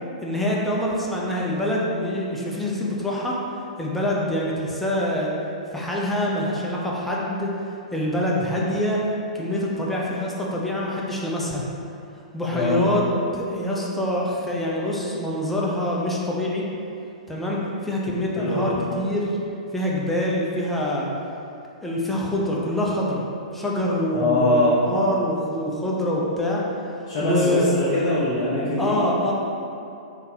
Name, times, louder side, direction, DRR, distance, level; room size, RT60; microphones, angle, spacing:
voice 1, 0.2-3.4 3.8-5.3 5.7-7.5 7.9-9.0 9.3-11.7 12.3-13.0 13.3-16.6 17.3-19.4 19.7-21.1 21.8-23.2 23.5-26.6 27.0-27.6 28.8-29.3, left 1 dB, 5° left, -5 dB, 0.5 m, -25 dB
voice 2, 12.5-12.8 18.4-18.8 24.1-24.8 27.1-29.0, left 1 dB, 40° left, -10 dB, 0.7 m, -22 dB
3.7 x 2.6 x 2.7 m, 2.7 s
figure-of-eight pair, 110°, 4 cm